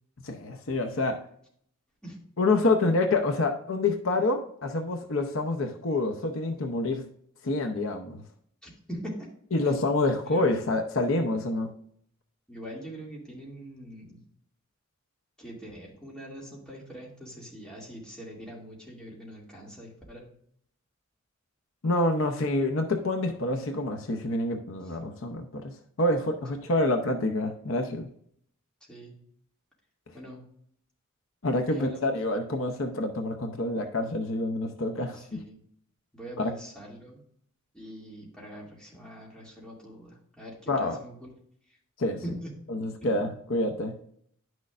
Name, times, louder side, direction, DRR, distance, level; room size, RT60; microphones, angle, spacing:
voice 1, 0.2-1.2 2.4-7.0 7.4-8.2 9.5-11.7 21.8-28.1 31.4-35.4 36.4-36.5 40.7-41.0 42.0-42.2 42.7-43.9, left 2 dB, 65° left, 5 dB, 0.8 m, -27 dB
voice 2, 8.6-9.3 9.6-9.7 10.3-10.7 12.5-14.2 15.4-20.3 22.4-22.5 24.8-25.0 28.9-29.2 30.1-30.4 31.7-32.1 35.1-35.6 36.1-37.2 37.7-41.3 41.7-41.8 42.2-42.6 43.0-43.4, equal, 5° left, -4 dB, 2.4 m, -43 dB
10.5 x 6.3 x 2.5 m, 0.65 s
head